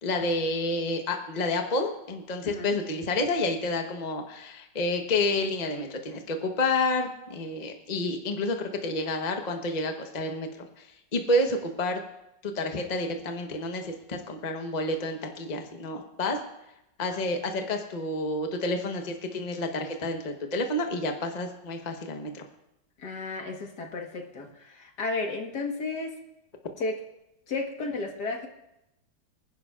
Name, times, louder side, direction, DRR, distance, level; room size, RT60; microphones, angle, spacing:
voice 1, 0.0-12.0 12.4-16.4 17.0-22.4, left 2 dB, 30° left, 4 dB, 1.0 m, -29 dB
voice 2, 2.4-2.7 23.0-26.2 26.8-27.0 27.5-28.5, left 3 dB, 65° left, 3 dB, 2.0 m, -33 dB
25.5 x 10.5 x 2.5 m, 0.86 s
omnidirectional pair, 1.9 m